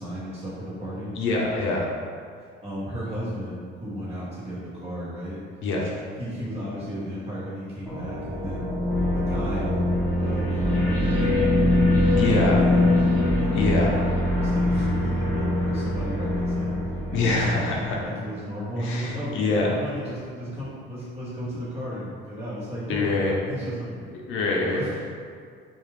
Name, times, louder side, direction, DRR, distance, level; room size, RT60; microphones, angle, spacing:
voice 1, 0.0-1.1 2.4-5.4 6.1-8.7 9.1-9.8 10.2-11.9 12.3-13.9 14.3-16.8 17.1-19.4 19.6-25.1, equal, 30° right, -10 dB, 1.1 m, -34 dB
voice 2, 1.1-1.8 5.6-5.9 12.1-12.5 13.5-13.9 17.1-18.0 18.8-19.7 22.9-23.3 24.3-24.8, left 3 dB, 65° left, -3 dB, 0.6 m, -24 dB
sound 1, 7.9-18.1, left 1 dB, 5° left, 0.8 m, -23 dB
2.4 x 2.3 x 3.2 m, 2.1 s
cardioid pair, 130°, 21 cm